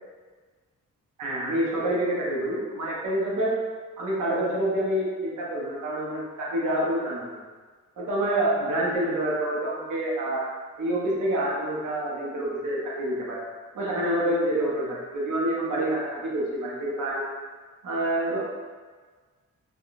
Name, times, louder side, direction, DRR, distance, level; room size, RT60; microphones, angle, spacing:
voice 1, 1.2-3.6 4.0-7.4 8.0-10.5 10.8-13.4 13.7-17.2 17.8-18.4, right 1 dB, 75° right, -5 dB, 0.8 m, -27 dB
3.5 x 2.3 x 2.4 m, 1.4 s
wide cardioid pair, 135°, 31 cm